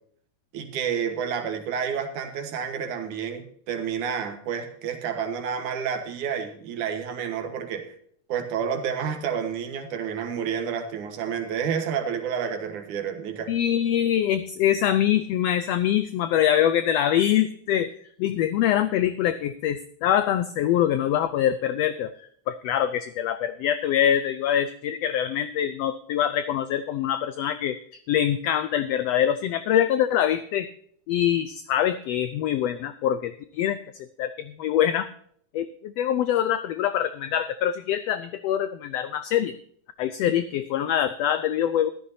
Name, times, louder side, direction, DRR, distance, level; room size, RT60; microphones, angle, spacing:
voice 1, 0.5-7.9 8.3-13.5, right 7 dB, 85° right, 7 dB, 2.8 m, -30 dB
voice 2, 13.5-17.9 18.2-30.7 31.1-35.1 35.5-39.5 40.0-41.9, left 10 dB, 75° left, 12 dB, 1.5 m, -24 dB
14.0 x 13.0 x 2.7 m, 0.62 s
omnidirectional pair, 3.4 m